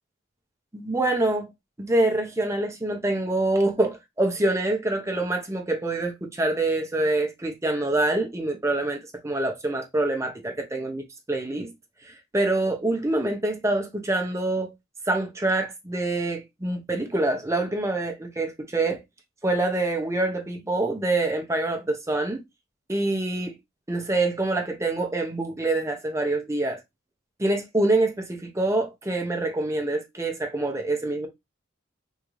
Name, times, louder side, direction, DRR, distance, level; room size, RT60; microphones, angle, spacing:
voice 1, 0.7-1.5 1.8-11.7 12.0-14.7 15.1-19.0 19.4-22.4 22.9-23.5 23.9-26.8 27.4-31.3, right 2 dB, 15° right, 0.6 m, -26 dB
3.6 x 2.6 x 3.0 m
head